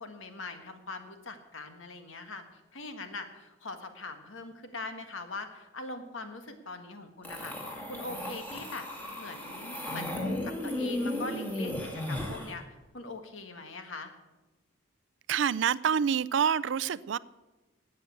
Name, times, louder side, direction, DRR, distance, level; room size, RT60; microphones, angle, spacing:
voice 1, 0.0-2.4 2.7-7.5 7.9-8.8 9.2-12.6 12.9-14.1, left 3 dB, 80° left, 1.6 m, -41 dB
sound 1, 7.2-12.5, left 1 dB, 10° left, 2.1 m, -35 dB
voice 2, 15.3-17.2, right 7 dB, 65° right, 0.4 m, -27 dB
12.5 x 8.6 x 8.2 m
head